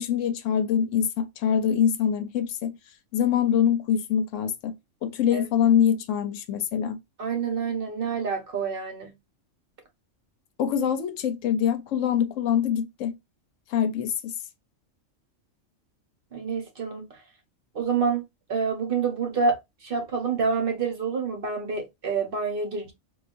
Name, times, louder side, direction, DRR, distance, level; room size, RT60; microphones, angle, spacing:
voice 1, 0.0-2.7 3.1-4.8 5.0-7.0 10.6-13.2 13.7-14.3, left 8 dB, 80° left, 1.0 m, -24 dB
voice 2, 7.2-9.1 16.3-17.2 17.7-22.9, right 5 dB, 50° right, 0.8 m, -28 dB
4.7 x 2.4 x 2.5 m
omnidirectional pair, 1.3 m